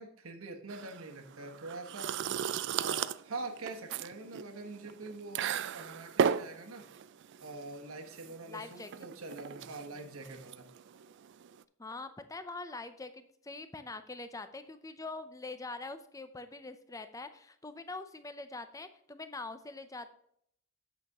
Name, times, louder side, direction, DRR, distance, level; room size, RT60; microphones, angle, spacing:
voice 1, 0.0-2.2 2.8-6.9 7.4-10.7, right 2 dB, 75° right, 5 dB, 1.2 m, -44 dB
sound 1, 0.7-11.6, right 7 dB, 55° right, 0.3 m, -36 dB
voice 2, 8.5-8.9 11.8-20.1, left 3 dB, 15° left, 10 dB, 0.6 m, -44 dB
8.3 x 6.7 x 3.6 m, 0.69 s
head